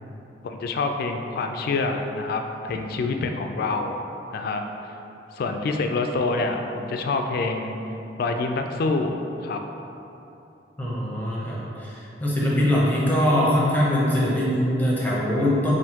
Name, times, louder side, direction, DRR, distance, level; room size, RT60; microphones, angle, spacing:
voice 1, 0.4-4.0 4.3-4.6 5.3-7.8 8.2-9.1 9.4-9.6, left 3 dB, 60° left, 4 dB, 0.3 m, -26 dB
voice 2, 10.8-15.7, left 1 dB, 10° left, -6 dB, 0.7 m, -22 dB
5.5 x 2.6 x 2.9 m, 2.9 s
head